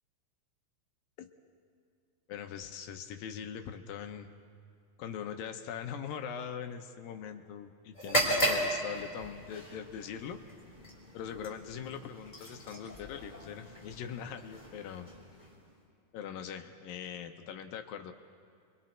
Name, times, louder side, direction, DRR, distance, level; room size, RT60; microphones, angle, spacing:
voice 1, 2.3-4.3 5.0-10.4 11.1-15.1 16.1-18.1, left 8 dB, 75° left, 6 dB, 2.4 m, -41 dB
sound 1, 7.9-15.8, right 1 dB, 10° left, 2.9 m, -36 dB
30.0 x 23.0 x 4.4 m, 2.3 s
omnidirectional pair, 4.4 m